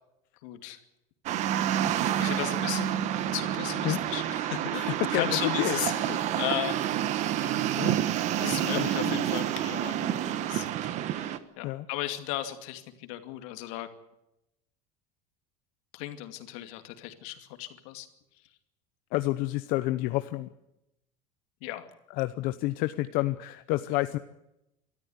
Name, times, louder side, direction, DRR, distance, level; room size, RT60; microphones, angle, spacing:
voice 1, 0.4-0.8 2.2-2.9 3.3-6.8 7.4-7.6 8.4-13.9 15.9-18.1 21.6-21.9, left 14 dB, 75° left, 8 dB, 2.5 m, -36 dB
sound 1, 1.3-11.4, right 11 dB, 40° right, 1.3 m, -29 dB
voice 2, 4.9-5.3 5.6-5.8 6.1-6.2 7.8-8.0 8.7-9.2 11.6-11.9 19.1-20.5 22.2-24.2, left 17 dB, 55° left, 11 dB, 0.8 m, -29 dB
23.5 x 13.5 x 9.6 m, 0.88 s
cardioid pair, 165°, 17 cm